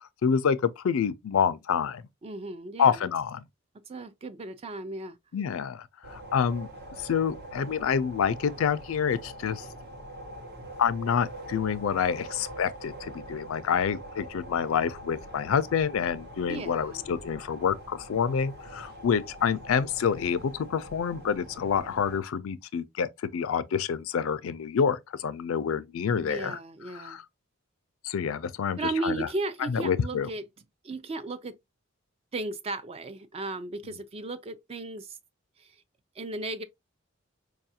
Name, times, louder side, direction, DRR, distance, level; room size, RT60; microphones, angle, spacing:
voice 1, 0.2-2.0 2.8-3.4 5.3-6.7 7.0-9.7 10.8-26.6 26.9-27.2 28.0-29.3 29.7-30.3, left 7 dB, 85° left, 0.4 m, -27 dB
voice 2, 2.2-3.1 3.9-5.2 16.5-17.1 26.2-27.2 28.8-30.4 30.8-31.6 32.3-35.2 35.6-35.8 36.2-36.6, right 2 dB, 30° right, 0.3 m, -35 dB
sound 1, 6.0-22.2, right 1 dB, 50° right, 0.8 m, -44 dB
4.7 x 2.4 x 2.7 m
head